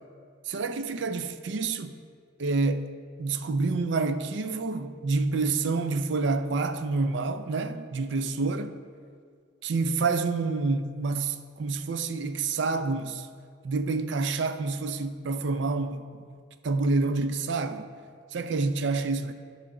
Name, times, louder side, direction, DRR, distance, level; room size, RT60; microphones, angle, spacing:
voice 1, 0.5-2.0 2.4-2.9 3.2-8.7 9.6-13.3 13.6-16.2 16.6-17.9 18.3-19.3, right 3 dB, 60° right, 0.5 m, -28 dB
12.0 x 5.7 x 3.7 m
head